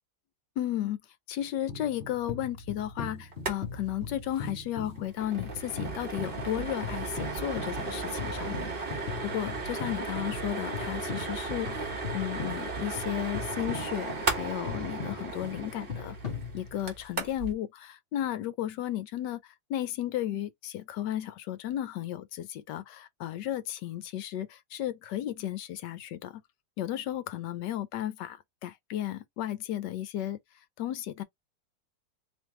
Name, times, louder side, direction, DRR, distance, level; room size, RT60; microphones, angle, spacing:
voice 1, 0.6-1.0 1.3-16.2 16.5-26.4 26.8-30.4 30.8-31.2, left 12 dB, 75° left, 1.1 m, -34 dB
sound 1, 1.7-17.1, left 5 dB, 50° left, 0.7 m, -40 dB
sound 2, 3.3-3.6 3.9-4.0 4.3-4.5 4.8-17.5, right 4 dB, 35° right, 1.0 m, -35 dB
3.5 x 3.1 x 3.0 m
omnidirectional pair, 2.1 m